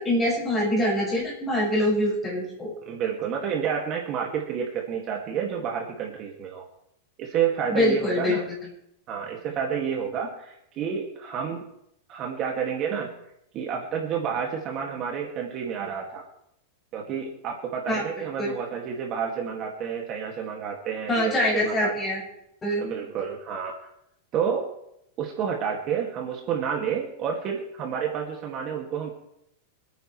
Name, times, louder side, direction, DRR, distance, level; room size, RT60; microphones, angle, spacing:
voice 1, 0.0-2.7 7.7-8.4 17.9-18.0 18.4-18.5 21.1-22.2 22.6-22.8, left 1 dB, 15° left, -5 dB, 6.4 m, -24 dB
voice 2, 2.9-6.6 7.2-8.5 9.1-11.7 12.1-13.2 13.5-16.2 16.9-21.9 22.8-23.9 24.3-24.7 25.2-29.1, right 7 dB, 30° right, 0 dB, 2.1 m, -30 dB
26.0 x 9.3 x 3.2 m, 0.79 s
supercardioid pair, 160°, 0 cm